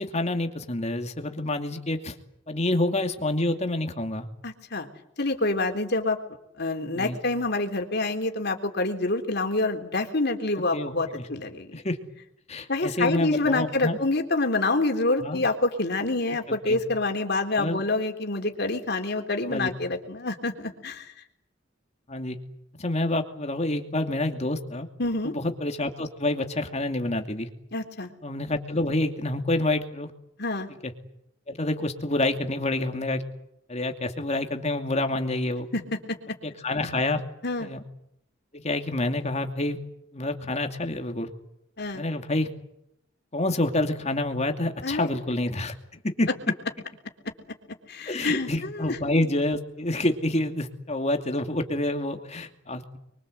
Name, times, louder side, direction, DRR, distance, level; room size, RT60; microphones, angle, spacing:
voice 1, 0.0-2.2 2.5-4.3 6.9-7.2 10.7-11.3 11.7-12.0 12.5-14.0 15.2-15.4 16.5-16.8 17.6-17.8 19.5-19.7 22.1-22.4 22.8-24.9 25.2-27.5 28.2-30.1 30.7-30.9 31.5-33.2 33.7-35.7 36.4-37.2 37.6-37.8 38.5-39.8 40.1-41.3 41.9-42.5 43.3-45.7 46.0-46.3 48.1-53.0, left 1 dB, 35° left, 6 dB, 2.6 m, -28 dB
voice 2, 4.4-4.9 5.2-6.2 6.6-11.8 12.7-21.1 25.0-25.3 27.7-28.1 30.4-30.7 35.7-36.4 37.4-37.7 41.8-42.0 44.8-45.1 47.9-49.0, left 2 dB, 60° left, 4 dB, 3.6 m, -27 dB
27.5 x 23.5 x 8.1 m, 0.77 s
head